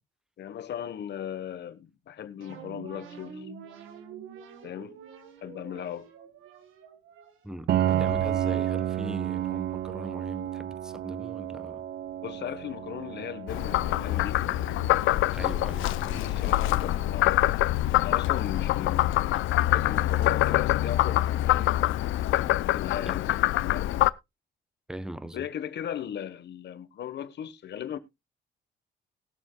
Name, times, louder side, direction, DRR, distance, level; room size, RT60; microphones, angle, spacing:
voice 1, 0.4-3.5 4.6-5.0 5.4-6.1 12.2-14.4 16.1-17.6 18.0-19.4 19.7-21.7 22.3-23.4 23.7-23.9 25.3-28.0, left 9 dB, 60° left, 1.2 m, -37 dB
sound 1, 2.4-9.9, right 6 dB, 85° right, 1.7 m, -44 dB
voice 2, 7.4-11.8 15.3-16.3 23.0-23.2 24.9-25.4, right 1 dB, 5° right, 1.0 m, -40 dB
Piano, 7.7-17.3, right 11 dB, 55° right, 0.4 m, -32 dB
Frog, 13.5-24.1, left 15 dB, 85° left, 0.5 m, -25 dB
20.5 x 7.2 x 2.3 m
cardioid pair, 90°, 20 cm